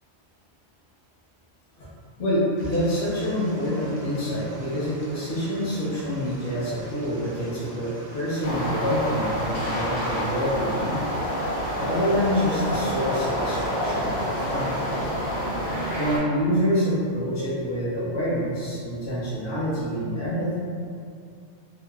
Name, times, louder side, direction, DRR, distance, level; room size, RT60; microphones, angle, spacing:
voice 1, 2.2-11.0 11.7-14.9 16.0-20.6, equal, 65° left, -9 dB, 1.0 m, -27 dB
sound 1, 2.6-15.1, right 1 dB, 55° right, 0.6 m, -44 dB
sound 2, 8.4-16.2, equal, 85° left, 1.2 m, -28 dB
2.7 x 2.1 x 2.3 m, 2.2 s
omnidirectional pair, 1.2 m